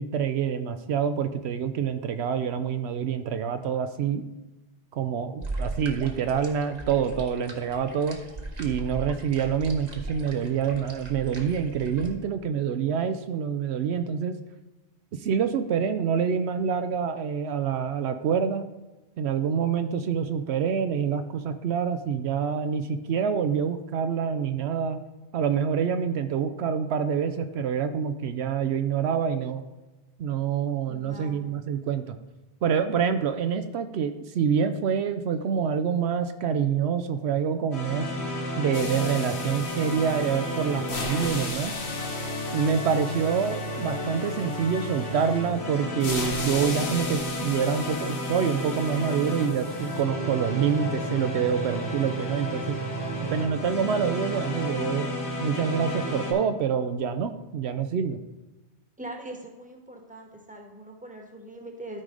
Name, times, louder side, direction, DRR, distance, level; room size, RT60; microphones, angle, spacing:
voice 1, 0.0-4.2 4.9-8.2 8.6-14.4 15.2-18.6 19.2-25.0 25.3-29.6 30.2-32.2 32.6-38.1 38.6-41.7 42.5-52.8 53.3-55.1 55.4-58.2, right 7 dB, 75° right, 9 dB, 0.8 m, -26 dB
sound 1, 5.4-12.1, right 2 dB, 40° right, 1.1 m, -38 dB
voice 2, 30.9-31.5 59.0-62.0, right 1 dB, 5° right, 1 dB, 1.2 m, -41 dB
sound 2, 37.7-56.3, left 1 dB, 80° left, 2.0 m, -32 dB
sound 3, 38.7-45.4 46.0-50.0, left 3 dB, 60° left, 1.3 m, -38 dB
13.0 x 4.8 x 3.8 m, 1.1 s
omnidirectional pair, 1.1 m